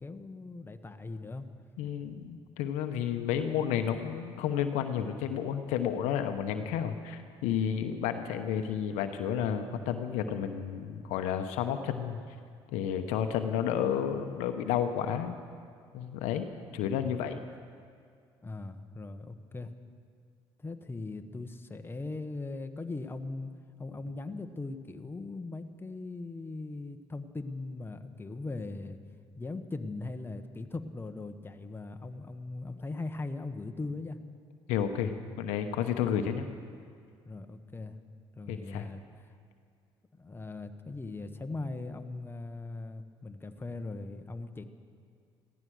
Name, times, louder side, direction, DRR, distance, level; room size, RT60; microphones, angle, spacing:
voice 1, 0.0-1.5 18.4-19.7 20.6-23.5 23.8-29.0 29.4-34.2 37.3-38.0 38.3-39.0 40.1-44.6, left 3 dB, 20° left, 6 dB, 1.2 m, -39 dB
voice 2, 1.8-12.2 12.7-15.3 15.9-16.5 16.7-17.4 34.7-36.5 38.5-38.9, left 9 dB, 80° left, 8 dB, 0.9 m, -31 dB
16.0 x 14.0 x 6.3 m, 2.2 s
hypercardioid pair, 60°, 12 cm